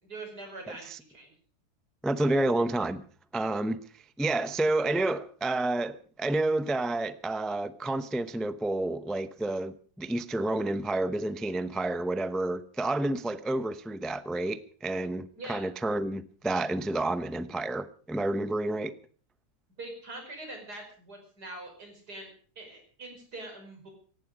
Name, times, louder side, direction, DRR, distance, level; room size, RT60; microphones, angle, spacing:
voice 1, 0.0-1.3 15.4-15.6 19.8-22.3 22.6-23.9, right 2 dB, 85° right, 6.0 m, -43 dB
voice 2, 2.0-3.0 3.3-18.9, right 2 dB, ahead, 0.3 m, -30 dB
18.0 x 15.0 x 5.1 m
omnidirectional pair, 1.7 m